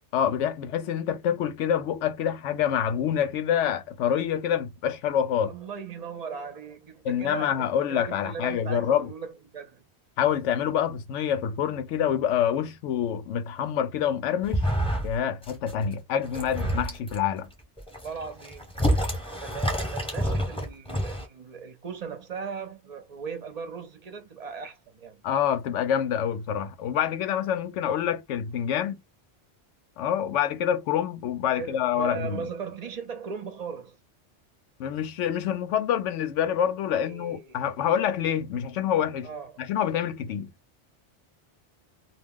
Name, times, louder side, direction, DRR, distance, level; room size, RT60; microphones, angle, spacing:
voice 1, 0.1-5.5 7.0-9.1 10.2-14.7 15.0-17.5 25.2-29.0 30.0-32.4 34.8-39.3 39.6-40.5, left 9 dB, 85° left, 0.9 m, -26 dB
voice 2, 5.5-9.8 18.0-18.7 19.1-25.2 31.5-34.0 36.9-37.6 39.2-39.6, right 6 dB, 45° right, 0.6 m, -38 dB
sound 1, 14.4-15.2 15.4-15.8 16.2-17.2 17.8-21.3, equal, 5° left, 0.9 m, -28 dB
2.3 x 2.2 x 3.5 m
omnidirectional pair, 1.2 m